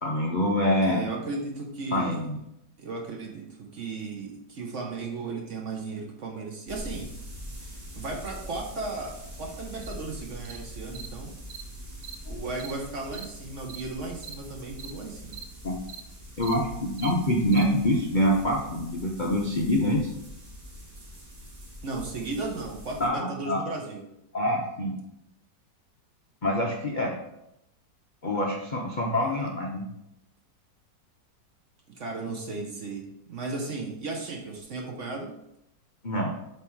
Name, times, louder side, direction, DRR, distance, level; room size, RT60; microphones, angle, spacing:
voice 1, 0.0-1.1 1.9-2.4 12.3-12.4 15.6-15.8 16.4-20.1 23.0-23.6 24.3-25.0 26.4-27.1 28.2-29.9 36.0-36.3, equal, 65° left, -1 dB, 0.4 m, -25 dB
voice 2, 0.8-2.3 2.8-7.1 8.0-11.3 12.3-15.4 21.8-24.0 29.2-29.5 31.9-35.3, right 3 dB, 50° right, 0 dB, 1.0 m, -35 dB
sound 1, 6.7-23.1, equal, 25° right, 1.0 m, -43 dB
Cricket, 9.8-9.9 10.4-10.6 10.9-11.1 11.5-11.6 12.0-12.2 12.6-12.7 13.1-13.3 13.7-13.8 14.2-14.3 14.8-14.9 15.3-15.4 15.9-16.0 16.4-16.5 17.0-17.1 17.5-17.6, right 9 dB, 90° right, 0.6 m, -42 dB
7.4 x 3.4 x 4.5 m, 0.83 s
omnidirectional pair, 2.0 m